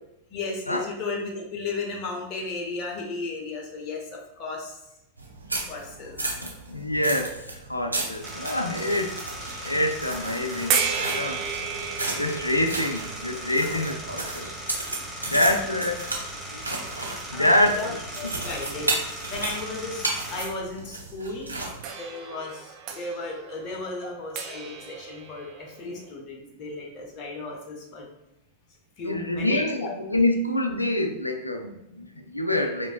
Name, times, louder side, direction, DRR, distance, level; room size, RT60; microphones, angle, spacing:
voice 1, 0.3-4.8 5.7-6.2 15.1-15.6 17.3-17.9 18.1-18.9 19.3-21.5 22.0-28.1 29.0-29.9, left 3 dB, 35° left, 0 dB, 0.9 m, -35 dB
sound 1, 5.2-21.8, right 2 dB, 85° right, 0.6 m, -34 dB
voice 2, 6.4-9.2 9.6-11.4 12.1-14.5 15.3-16.1 16.5-16.6 17.3-18.3 29.0-32.9, left 1 dB, 85° left, 5 dB, 0.4 m, -26 dB
sound 2, 8.2-20.5, right 1 dB, 5° right, 0.9 m, -39 dB
sound 3, 10.7-15.7 16.6-16.7 21.8-26.1, right 6 dB, 40° right, 0.4 m, -33 dB
5.0 x 2.6 x 2.3 m, 0.89 s
figure-of-eight pair, 90°, 0 cm